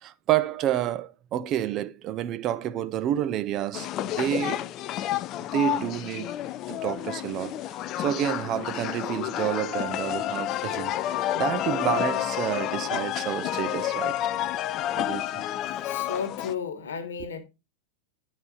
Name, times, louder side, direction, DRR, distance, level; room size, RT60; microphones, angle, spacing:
voice 1, 0.0-4.7 5.5-14.3 15.0-15.5, right 11 dB, 35° right, 0.5 m, -29 dB
sound 1, 3.7-16.5, left 13 dB, 35° left, 0.4 m, -30 dB
voice 2, 15.8-17.4, left 6 dB, 65° left, 1.4 m, -33 dB
10.5 x 4.2 x 3.9 m
figure-of-eight pair, 90°, 0 cm